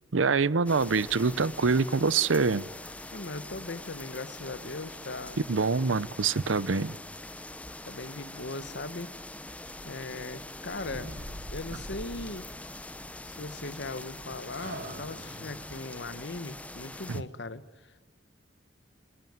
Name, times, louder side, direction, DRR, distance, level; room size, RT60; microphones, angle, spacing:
voice 1, 0.1-2.7 5.5-7.0 17.1-17.2, right 4 dB, 80° right, 20 dB, 0.7 m, -25 dB
sound 1, 0.7-17.2, left 1 dB, 5° left, 0.8 m, -43 dB
voice 2, 3.1-5.5 7.9-9.1 9.8-11.1 11.5-12.5 13.2-18.0, left 2 dB, 60° left, 15 dB, 1.1 m, -39 dB
sound 2, 9.7-10.5 10.8-12.0 13.3-14.2 14.5-15.8, right 1 dB, 65° right, 4.2 m, -45 dB
30.0 x 20.5 x 9.5 m, 1.5 s
head